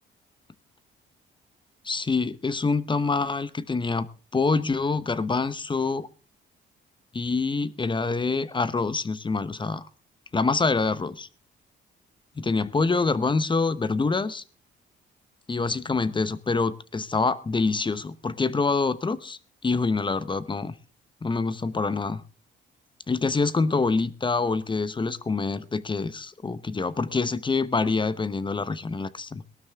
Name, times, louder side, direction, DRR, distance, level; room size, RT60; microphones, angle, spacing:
voice 1, 1.8-4.1 4.3-6.1 7.1-9.8 10.3-11.3 12.4-14.4 15.5-20.7 21.2-22.2 23.1-29.4, left 4 dB, 25° left, 16 dB, 0.9 m, -26 dB
18.5 x 12.5 x 3.5 m, 0.36 s
cardioid pair, 90°, 20 cm